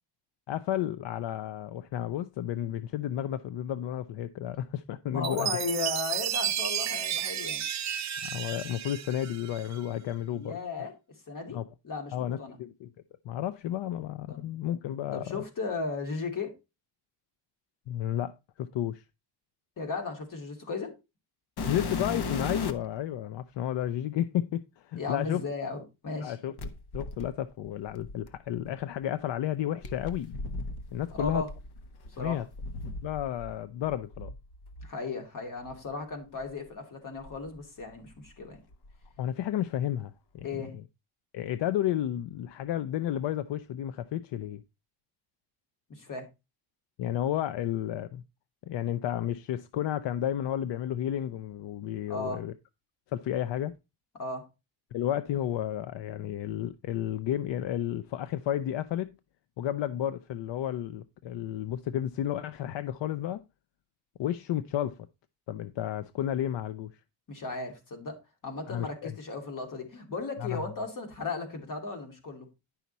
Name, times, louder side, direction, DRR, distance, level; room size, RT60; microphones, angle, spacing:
voice 1, 0.5-5.5 8.2-10.6 11.5-11.7 12.1-12.9 13.2-15.4 17.9-19.0 21.7-25.4 26.2-26.5 26.9-30.4 30.9-31.4 32.2-32.4 33.0-34.3 39.2-40.7 41.3-44.6 47.0-48.2 48.7-52.5 53.1-53.7 54.9-59.2 59.6-63.4 64.2-65.1 65.5-67.0 68.7-69.1 70.4-70.6, left 11 dB, 80° left, 0.6 m, -32 dB
voice 2, 5.1-7.6 10.3-10.9 11.3-11.6 11.8-12.6 14.3-14.4 15.1-16.5 19.8-20.9 25.0-26.4 31.2-31.5 32.2-32.4 34.8-38.6 40.4-40.7 45.9-46.3 52.1-52.4 54.1-54.5 67.3-68.2 68.4-72.5, left 3 dB, 45° left, 2.7 m, -35 dB
Chime, 5.2-9.8, right 10 dB, 40° right, 0.6 m, -32 dB
sound 1, 21.6-23.0 23.8-23.9 26.6-28.7 29.8-33.6 33.8-34.9 35.7-35.8 36.4-36.5 37.2-38.3 38.5-39.1 40.4-40.5, left 3 dB, 65° left, 1.2 m, -38 dB
10.5 x 5.7 x 4.1 m
wide cardioid pair, 165°, 43 cm